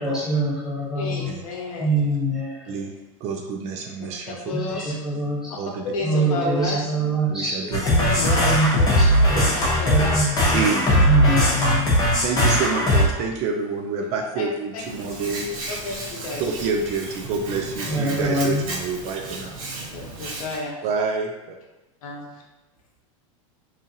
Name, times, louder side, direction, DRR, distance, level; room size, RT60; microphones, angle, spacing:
voice 1, 0.0-1.4 1.8-2.8 4.2-5.5 6.0-7.6 7.9-9.5 9.8-10.7 11.0-12.1 17.9-18.6, right 1 dB, 5° right, -9 dB, 1.1 m, -24 dB
voice 2, 0.9-2.0 4.0-5.2 5.5-6.9 7.6-7.7 8.0-10.3 11.2-11.7 14.4-14.5 14.7-15.2 15.7-16.4 17.9-18.0 19.9-20.8 22.0-22.3, left 2 dB, 80° left, -1 dB, 0.8 m, -32 dB
voice 3, 3.2-4.4 5.6-5.8 7.3-7.8 9.3-9.4 10.5-11.1 12.2-15.5 16.4-19.6 20.8-21.3, right 4 dB, 40° right, 3 dB, 0.4 m, -27 dB
sound 1, 7.7-13.1, equal, 20° left, 0.8 m, -19 dB
Hands, 14.8-20.6, right 2 dB, 85° right, 0.9 m, -34 dB
2.8 x 2.4 x 2.6 m, 1.0 s
supercardioid pair, 130°, 17 cm